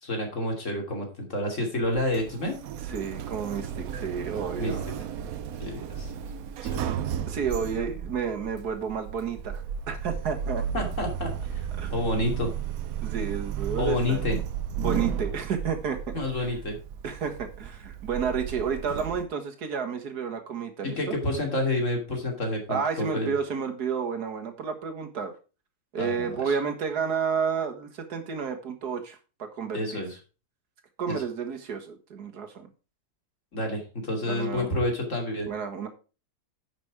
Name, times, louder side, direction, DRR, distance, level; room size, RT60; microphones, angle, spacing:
voice 1, 0.0-2.6 4.6-4.8 5.6-6.1 6.6-6.9 10.7-12.5 13.8-14.4 14.9-15.0 16.1-16.8 20.8-23.3 26.0-26.6 29.7-30.2 31.1-31.2 33.5-35.5, left 1 dB, 50° left, 1 dB, 3.1 m, -29 dB
Sliding door, 1.8-19.2, right 8 dB, 70° right, 1.1 m, -34 dB
voice 2, 2.9-5.0 7.3-10.6 11.8-11.9 13.0-14.2 14.8-16.2 17.0-21.2 22.7-25.3 25.9-30.0 31.0-32.7 34.2-34.8 35.5-35.9, right 6 dB, 90° right, 5 dB, 2.1 m, -31 dB
10.5 x 6.1 x 4.8 m, 0.33 s
omnidirectional pair, 1.6 m